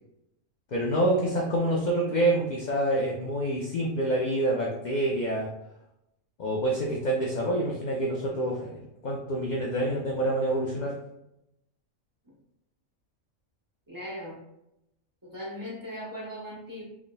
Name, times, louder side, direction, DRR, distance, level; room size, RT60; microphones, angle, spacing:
voice 1, 0.7-5.5 6.4-10.9, right 1 dB, 60° left, -2 dB, 0.4 m, -27 dB
voice 2, 13.9-14.4 15.2-16.8, equal, 15° right, -7 dB, 1.4 m, -38 dB
3.9 x 3.5 x 2.2 m, 0.84 s
omnidirectional pair, 1.4 m